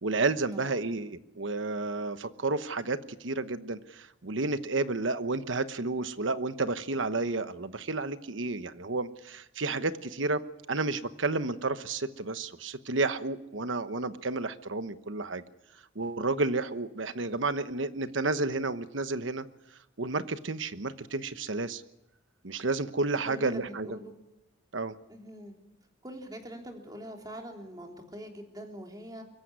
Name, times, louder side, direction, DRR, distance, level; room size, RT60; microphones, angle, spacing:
voice 1, 0.0-10.4 10.7-15.4 15.9-19.5 20.0-21.8 22.4-24.0 24.7-24.9, right 3 dB, 70° right, 11 dB, 1.1 m, -31 dB
voice 2, 0.5-0.9 23.3-24.1 25.1-25.5 26.0-29.2, equal, 20° right, 2 dB, 3.4 m, -43 dB
24.0 x 14.5 x 9.7 m, 0.90 s
head